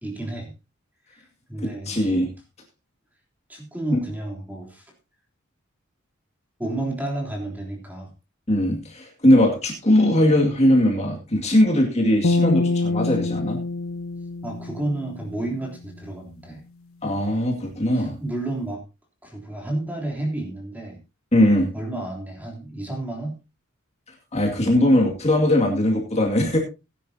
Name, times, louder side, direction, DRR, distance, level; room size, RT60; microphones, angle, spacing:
voice 1, 0.0-0.5 1.1-2.1 3.5-4.9 6.6-8.1 14.4-16.6 17.9-18.8 19.2-21.0 21.7-23.4, right 2 dB, 10° right, 1 dB, 3.3 m, -31 dB
voice 2, 1.9-2.3 3.9-4.0 8.5-13.6 17.0-18.2 21.3-21.7 24.3-26.6, left 1 dB, 30° left, 0 dB, 2.4 m, -20 dB
sound 1, 12.2-15.6, left 3 dB, 90° left, 1.0 m, -25 dB
17.5 x 10.5 x 2.8 m, 0.27 s
head